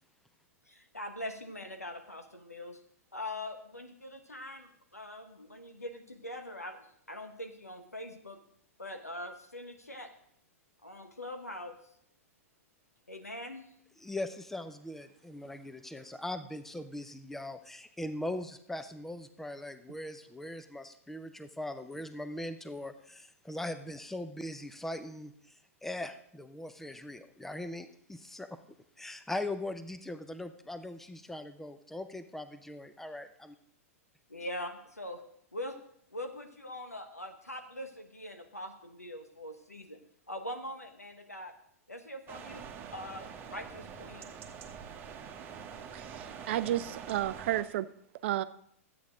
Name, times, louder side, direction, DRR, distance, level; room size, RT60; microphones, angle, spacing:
voice 1, 0.7-2.8 3.1-8.4 8.8-10.1 10.8-11.7 13.1-13.7 34.3-35.2 35.5-35.8 36.1-40.0 40.3-41.5 41.9-42.6 42.9-44.3, left 1 dB, 90° left, 1.2 m, -42 dB
voice 2, 14.0-25.6 25.8-28.6 29.0-33.6, left 1 dB, 5° left, 0.7 m, -40 dB
sound 1, 42.3-47.6, right 7 dB, 25° right, 1.2 m, -45 dB
voice 3, 45.9-47.9 48.2-48.4, right 13 dB, 50° right, 0.5 m, -32 dB
12.5 x 8.5 x 3.8 m
figure-of-eight pair, 100°, 8 cm